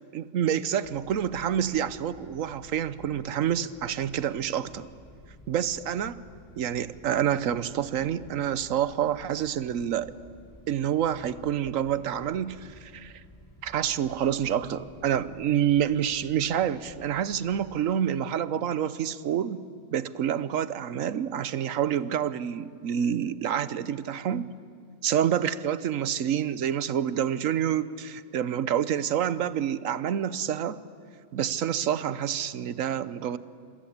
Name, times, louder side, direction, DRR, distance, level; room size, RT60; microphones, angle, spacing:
voice 1, 0.1-4.9 5.5-6.2 6.6-10.1 10.7-13.1 13.6-19.6 19.9-24.5 25.0-30.8 31.3-33.4, right 9 dB, 80° right, 16 dB, 1.2 m, -28 dB
sound 1, 0.8-17.8, left 1 dB, 15° left, 2.1 m, -53 dB
27.0 x 21.5 x 8.6 m, 2.3 s
omnidirectional pair, 1.4 m